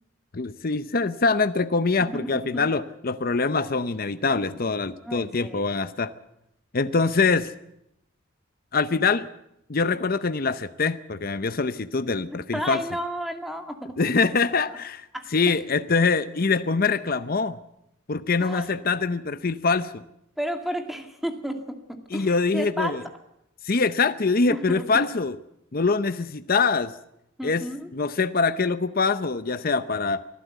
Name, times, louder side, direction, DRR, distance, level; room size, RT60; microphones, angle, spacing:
voice 1, 0.3-6.1 6.7-7.5 8.7-9.3 9.7-12.8 14.0-15.1 15.3-17.6 18.1-20.0 22.1-23.0 23.6-25.4 25.7-26.9 27.4-27.6 27.9-30.2, left 4 dB, 45° left, 11 dB, 0.7 m, -24 dB
voice 2, 2.0-2.7 5.0-5.7 12.5-14.0 15.1-15.6 18.4-18.7 20.4-23.0 24.5-25.0 27.4-27.9, equal, ahead, 4 dB, 2.3 m, -32 dB
24.5 x 14.5 x 8.1 m, 0.80 s
head